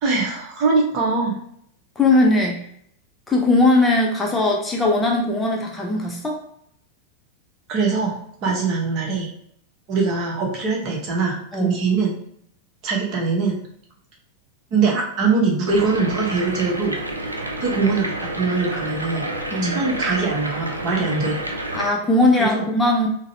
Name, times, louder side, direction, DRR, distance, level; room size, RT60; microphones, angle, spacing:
voice 1, 0.0-1.4 7.7-9.3 9.9-12.1 12.8-13.6 14.7-16.9 17.6-19.3 19.6-21.4 22.4-22.7, right 4 dB, 40° right, -1 dB, 0.8 m, -22 dB
voice 2, 2.0-2.6 3.3-6.4 8.5-8.6 11.5-11.8 19.5-19.8 21.7-23.1, left 2 dB, 15° left, 0 dB, 0.5 m, -19 dB
sound 1, 15.7-21.9, right 1 dB, 85° right, 0.4 m, -29 dB
3.8 x 2.0 x 2.6 m, 0.68 s
figure-of-eight pair, 90°, 0 cm